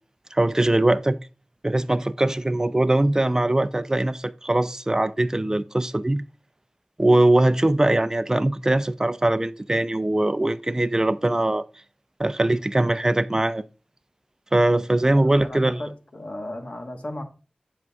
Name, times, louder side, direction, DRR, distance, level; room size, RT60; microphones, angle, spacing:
voice 1, 0.3-1.2 1.6-6.2 7.0-11.6 12.2-13.6 14.5-15.8, right 1 dB, 25° right, 0.4 m, -21 dB
voice 2, 15.0-17.2, left 1 dB, 60° left, 1.3 m, -36 dB
8.1 x 6.3 x 2.3 m
wide cardioid pair, 50°, 2 cm